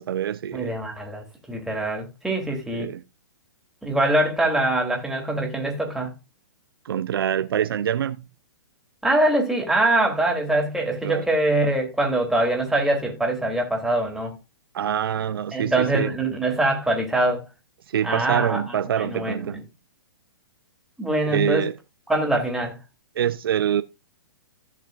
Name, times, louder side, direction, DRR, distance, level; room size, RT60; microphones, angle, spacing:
voice 1, 0.0-0.7 2.7-3.0 6.8-8.3 11.0-11.2 14.7-16.1 17.9-19.6 21.3-21.8 23.2-23.8, right 9 dB, 65° right, 0.7 m, -25 dB
voice 2, 0.5-2.9 3.8-6.1 9.0-14.4 15.5-17.4 18.0-19.6 21.0-21.7 22.1-22.8, right 1 dB, 5° right, 3.0 m, -23 dB
16.0 x 6.8 x 2.5 m
hypercardioid pair, 125°, 13 cm